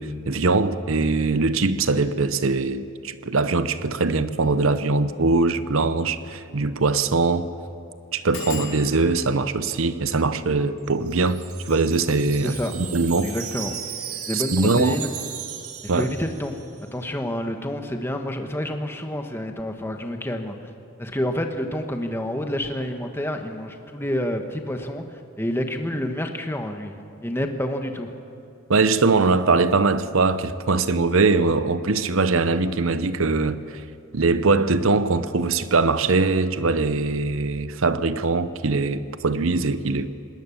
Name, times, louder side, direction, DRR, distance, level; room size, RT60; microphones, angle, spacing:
voice 1, 0.0-7.5 8.1-11.4 11.7-13.3 14.3-15.0 15.9-16.1 28.7-33.8 34.1-40.1, right 3 dB, 70° right, 0.8 m, -22 dB
sound 1, 5.2-5.4 5.8-5.9 6.1-6.2 6.7-7.0 7.3-7.4 8.3-13.6 14.3-14.8 15.1-15.5 15.7-15.8, left 7 dB, 75° left, 5.5 m, -43 dB
Wind chime, 10.8-16.8, right 9 dB, 85° right, 2.0 m, -36 dB
voice 2, 12.4-12.7 13.2-13.8 14.3-15.1 15.8-16.6 16.9-20.7 21.0-26.9 27.2-28.1, left 1 dB, 10° left, 1.1 m, -28 dB
20.5 x 18.5 x 7.1 m
head